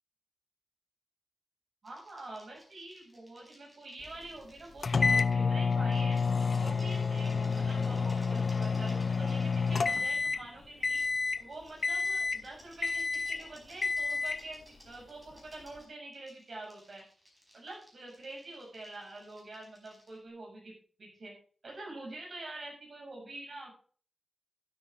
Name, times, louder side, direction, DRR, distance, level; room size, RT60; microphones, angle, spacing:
sound 1, 1.8-5.3 5.7-10.1 10.9-20.2, equal, 15° right, 4.8 m, -60 dB
voice 1, 1.8-6.2 6.6-11.0 11.4-17.0 17.5-20.7 21.0-21.3 21.6-23.7, right 2 dB, 50° right, -1 dB, 6.6 m, -46 dB
sound 2, 4.8-10.5 10.8-11.4 11.8-12.5 12.8-13.4 13.8-14.4, left 4 dB, 45° left, 0.4 m, -29 dB
12.5 x 9.6 x 3.7 m, 0.43 s
wide cardioid pair, 130°, 0 cm